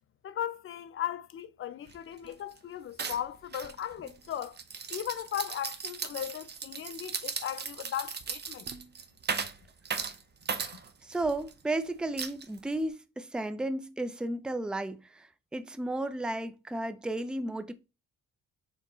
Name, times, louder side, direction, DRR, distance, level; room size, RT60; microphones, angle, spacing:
voice 1, 0.2-4.6 4.9-8.7, left 10 dB, 45° left, 0.6 m, -37 dB
sound 1, 1.9-2.0 2.2-2.6 3.0-11.5 12.2-12.9, right 6 dB, 35° right, 0.7 m, -37 dB
voice 2, 11.0-17.7, right 1 dB, 5° right, 0.4 m, -33 dB
4.4 x 3.0 x 3.8 m
cardioid pair, 90°, 30 cm